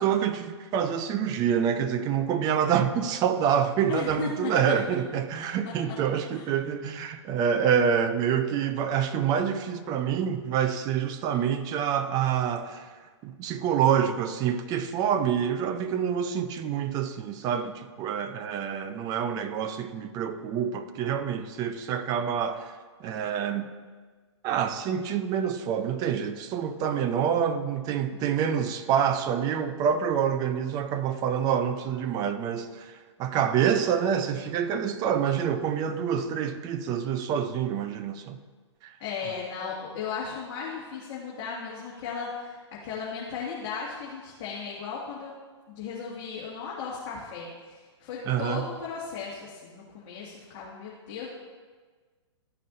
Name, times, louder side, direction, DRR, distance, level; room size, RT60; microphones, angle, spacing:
voice 1, 0.0-12.9 13.2-22.7 23.0-23.7 24.4-38.4 38.8-38.9 48.3-48.7, right 8 dB, 25° right, 0.5 m, -27 dB
voice 2, 3.9-4.5 6.3-6.5 28.1-28.6 39.0-45.3 45.7-51.3, left 6 dB, 40° left, 1.9 m, -36 dB
13.5 x 5.4 x 2.6 m
hypercardioid pair, 130°, 15 cm